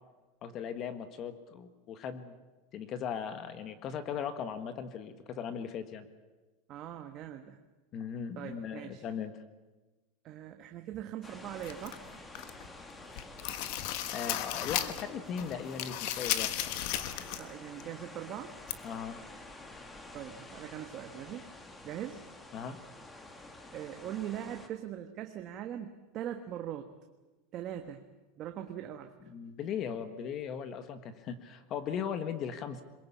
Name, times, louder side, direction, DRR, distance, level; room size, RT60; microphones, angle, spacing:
voice 1, 0.4-2.3 2.7-6.1 7.9-9.3 14.1-16.6 18.8-19.2 22.5-22.8 29.3-32.8, left 7 dB, 35° left, 10 dB, 1.5 m, -38 dB
voice 2, 6.7-7.6 8.3-9.0 10.2-12.0 17.3-18.6 20.1-21.5 21.8-22.2 23.7-26.9 27.5-28.0 28.4-29.2, right 11 dB, 35° right, 5 dB, 1.3 m, -41 dB
sound 1, 11.2-24.7, left 2 dB, 10° left, 1.8 m, -49 dB
sound 2, 11.6-12.7 13.0-15.1 15.4-17.5 17.8-17.9 18.7-18.8, left 12 dB, 55° left, 1.5 m, -35 dB
22.5 x 21.5 x 8.6 m, 1.2 s
supercardioid pair, 155°, 0 cm